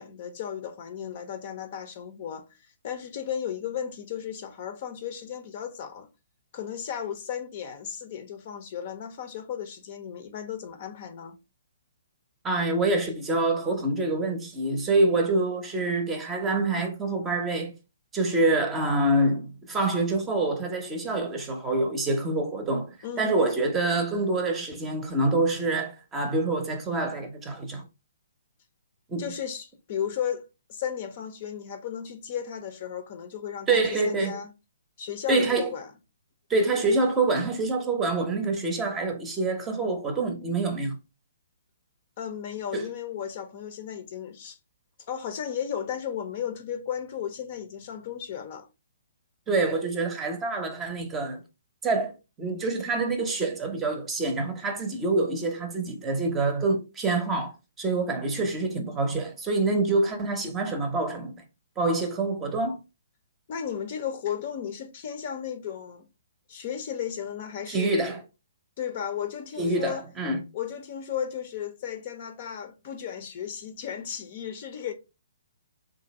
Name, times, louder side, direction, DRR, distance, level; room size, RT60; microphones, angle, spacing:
voice 1, 0.0-2.5 2.8-6.1 6.5-11.4 23.0-23.4 29.2-30.4 30.7-34.5 35.0-35.9 42.2-44.6 45.1-48.7 63.5-66.1 66.5-68.1 68.8-70.0 70.5-74.9, left 8 dB, 45° left, 0.7 m, -34 dB
voice 2, 12.4-17.7 18.1-27.8 29.1-29.2 33.7-34.4 35.3-35.7 36.5-41.0 42.7-42.9 49.5-51.4 51.8-61.3 61.8-62.8 67.7-68.2 69.6-70.4, right 2 dB, 15° right, 0.8 m, -26 dB
3.2 x 2.5 x 4.1 m
hypercardioid pair, 145°, 0 cm